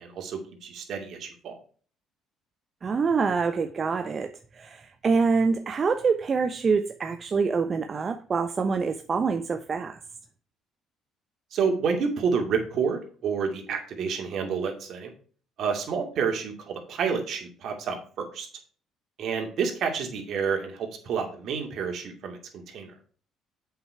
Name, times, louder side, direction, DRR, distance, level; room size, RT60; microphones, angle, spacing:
voice 1, 0.0-1.6 11.5-15.1 15.6-18.5 19.2-22.9, right 6 dB, 60° right, 2.5 m, -29 dB
voice 2, 2.8-10.0, right 5 dB, 35° right, 0.7 m, -26 dB
7.7 x 5.8 x 4.6 m
cardioid pair, 100°, 0 cm